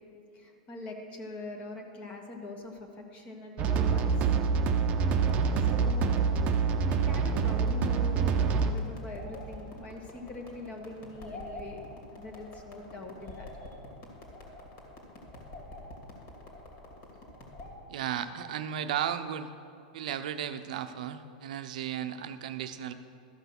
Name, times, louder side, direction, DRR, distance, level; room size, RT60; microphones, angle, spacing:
voice 1, 0.3-4.1 5.6-6.1 6.9-11.8 12.1-13.7, left 2 dB, 30° left, 3 dB, 1.5 m, -43 dB
sound 1, 3.6-8.7, right 5 dB, 35° right, 0.7 m, -26 dB
sound 2, 5.1-17.7, left 1 dB, 45° left, 2.4 m, -47 dB
voice 2, 17.9-19.5 19.9-22.9, right 9 dB, 75° right, 9 dB, 0.7 m, -34 dB
13.5 x 5.7 x 6.1 m, 2.4 s
supercardioid pair, 130°, 4 cm